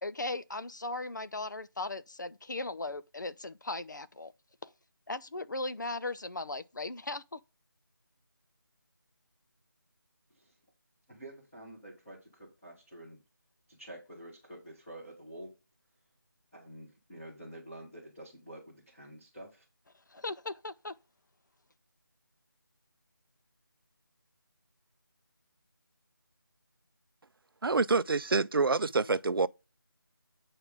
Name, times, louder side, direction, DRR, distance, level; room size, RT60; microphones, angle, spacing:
voice 1, 0.0-4.3 4.6-4.7 5.1-7.4 20.1-21.0, left 2 dB, 55° left, 0.6 m, -38 dB
voice 2, 11.1-13.2 13.7-15.5 16.5-19.6, right 1 dB, 5° left, 1.0 m, -48 dB
voice 3, 27.6-29.5, right 3 dB, 80° right, 0.6 m, -27 dB
8.9 x 4.9 x 3.6 m
figure-of-eight pair, 180°, 12 cm